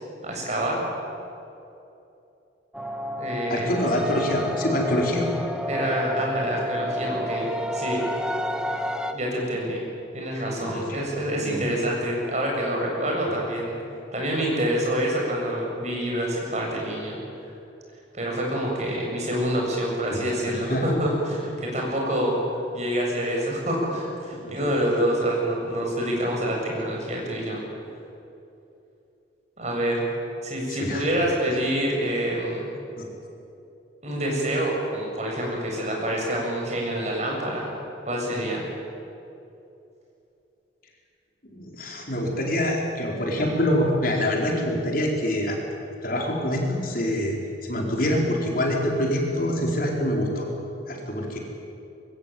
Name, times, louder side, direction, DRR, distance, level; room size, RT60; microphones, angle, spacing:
voice 1, 0.2-0.8 3.2-3.7 5.7-7.5 7.7-8.0 9.1-9.8 10.1-13.8 14.1-17.5 18.1-22.4 22.7-27.6 29.6-30.0 30.4-32.7 34.0-37.7 38.0-38.7, right 1 dB, 40° right, -1 dB, 7.5 m, -27 dB
sound 1, 2.7-9.1, equal, 5° right, 1.3 m, -30 dB
voice 2, 3.5-5.3 10.6-11.0 11.4-11.6 20.0-20.2 20.4-20.9 24.4-24.5 30.7-31.1 33.0-33.1 41.4-45.6 46.0-47.3 47.6-50.5 50.9-51.4, left 1 dB, 50° left, 0 dB, 4.6 m, -25 dB
24.0 x 22.5 x 9.3 m, 2.8 s
head